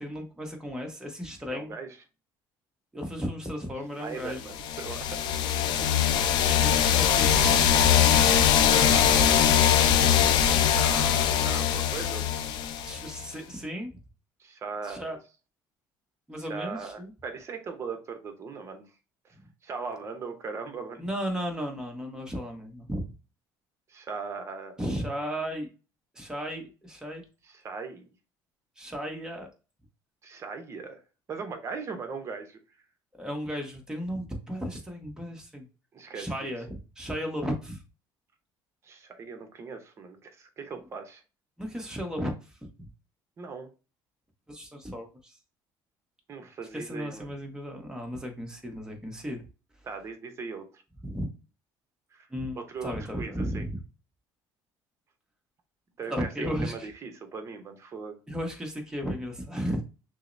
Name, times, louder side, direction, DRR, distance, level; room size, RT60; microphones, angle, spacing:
voice 1, 0.0-1.7 2.9-4.4 6.4-7.7 8.1-8.4 12.8-13.9 14.8-15.2 16.3-17.1 21.0-23.1 24.8-25.7 26.1-27.2 28.8-29.5 33.2-35.7 36.1-37.8 41.6-42.5 42.8-42.9 44.5-45.4 46.7-49.4 51.0-51.3 52.3-53.8 56.1-56.9 58.3-59.8, equal, 10° right, 1.1 m, -34 dB
voice 2, 1.5-2.0 3.9-5.2 5.8-6.1 8.2-9.7 10.6-12.3 14.4-15.1 16.4-18.9 19.6-21.0 23.9-24.8 27.4-28.1 30.2-31.0 31.3-32.6 35.9-36.5 38.8-41.2 43.4-43.7 46.3-47.3 49.8-50.8 52.1-52.3 52.5-53.6 56.0-58.2, right 5 dB, 35° right, 0.8 m, -39 dB
sound 1, 4.5-13.2, left 9 dB, 70° left, 0.5 m, -22 dB
6.2 x 2.1 x 2.6 m
cardioid pair, 120°, 8 cm